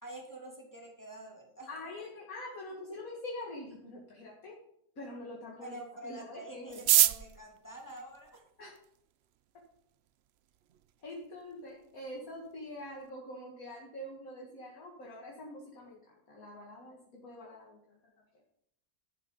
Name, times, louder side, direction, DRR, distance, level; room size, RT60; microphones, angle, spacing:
voice 1, 0.0-1.7 2.0-2.1 5.6-8.4, right 1 dB, 10° left, -1 dB, 2.5 m, -47 dB
voice 2, 1.7-4.6 5.0-6.8 8.6-8.7 11.0-18.0, left 1 dB, 60° left, -2 dB, 2.4 m, -45 dB
sound 1, 6.7-9.0 9.8-9.9 10.1-10.2 10.4-10.9 11.2-11.3 11.5-11.9 12.3-12.5 12.8-13.1, right 12 dB, 80° right, 0.5 m, -28 dB
11.5 x 11.0 x 3.9 m, 0.76 s
omnidirectional pair, 1.7 m